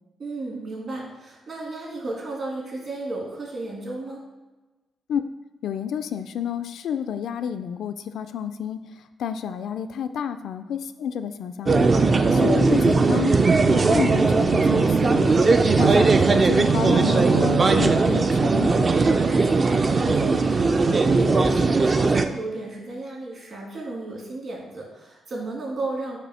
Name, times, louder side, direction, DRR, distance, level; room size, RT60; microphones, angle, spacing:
voice 1, 0.2-4.2 12.2-12.8 19.2-26.2, right 2 dB, 50° right, -2 dB, 2.1 m, -34 dB
voice 2, 5.6-8.8 9.2-11.9 12.3-13.3 13.6-15.3 15.8-18.9, left 8 dB, 75° left, 9 dB, 0.4 m, -30 dB
sound 1, 11.7-22.2, right 3 dB, 35° right, 0.4 m, -19 dB
6.7 x 2.6 x 5.7 m, 1.2 s
cardioid pair, 105°, 0 cm